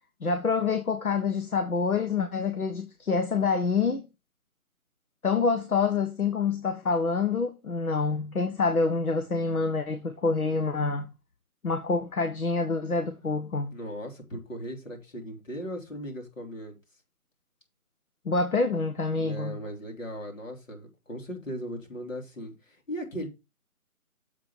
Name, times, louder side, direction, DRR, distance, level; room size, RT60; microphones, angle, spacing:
voice 1, 0.2-4.0 5.2-11.1 11.6-13.7 18.2-19.6, left 4 dB, 75° left, 1.4 m, -27 dB
voice 2, 13.7-16.8 19.2-23.3, equal, 60° left, 3.3 m, -38 dB
7.5 x 5.6 x 5.6 m
figure-of-eight pair, 170°, 44 cm